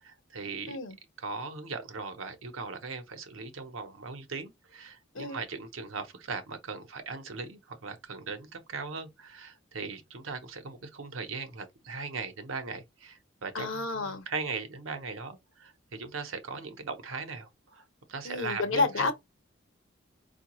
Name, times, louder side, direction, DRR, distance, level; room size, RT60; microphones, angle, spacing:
voice 1, 0.0-0.8 1.2-19.1, right 4 dB, 90° right, 0.8 m, -39 dB
voice 2, 13.5-14.3 18.2-19.1, left 3 dB, 80° left, 0.8 m, -30 dB
4.5 x 2.3 x 2.9 m
head